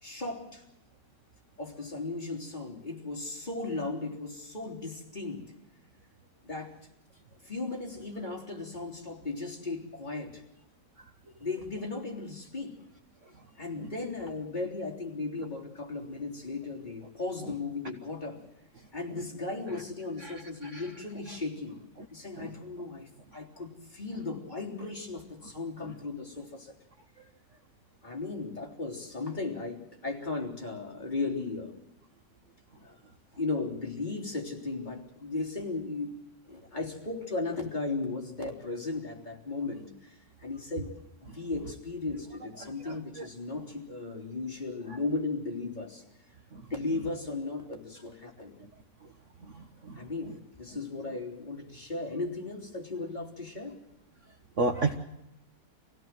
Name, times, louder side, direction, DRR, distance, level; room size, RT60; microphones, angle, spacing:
voice 1, 0.0-0.6 1.6-5.5 6.4-6.8 7.4-10.4 11.4-12.8 13.6-18.4 18.9-21.8 22.1-26.7 28.0-31.8 32.8-33.0 33.4-36.2 36.5-40.9 41.3-46.0 46.7-48.5 49.9-53.8, left 3 dB, 25° left, -1 dB, 3.7 m, -36 dB
voice 2, 42.9-43.3 54.6-55.0, right 3 dB, 45° right, 5 dB, 1.6 m, -28 dB
26.0 x 17.0 x 7.6 m, 0.86 s
omnidirectional pair, 1.9 m